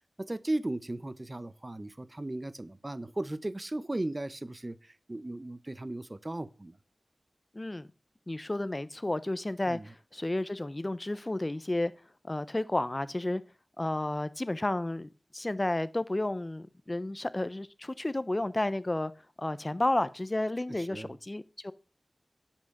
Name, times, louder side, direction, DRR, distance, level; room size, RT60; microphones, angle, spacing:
voice 1, 0.2-6.7 9.7-9.9 20.7-21.1, right 1 dB, 30° right, 0.7 m, -36 dB
voice 2, 7.5-7.9 8.3-11.9 12.3-13.4 13.8-19.1 19.4-21.7, left 1 dB, 30° left, 0.7 m, -32 dB
11.5 x 5.8 x 6.5 m
wide cardioid pair, 75°, 0 cm